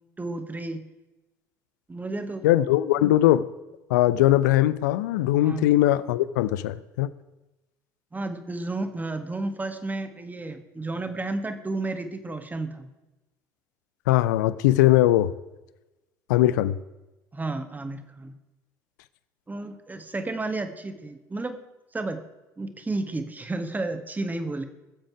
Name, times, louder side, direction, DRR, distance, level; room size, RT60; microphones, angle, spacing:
voice 1, 0.2-0.9 1.9-2.5 5.4-5.7 8.1-12.9 17.3-18.3 19.5-21.6 21.9-22.2 22.6-24.6, right 2 dB, 15° right, 8 dB, 1.7 m, -32 dB
voice 2, 2.4-3.5 3.9-7.1 14.1-15.3 16.3-16.8, left 14 dB, 70° left, 16 dB, 0.6 m, -20 dB
21.5 x 7.6 x 4.8 m, 1.0 s
hypercardioid pair, 65°, 10 cm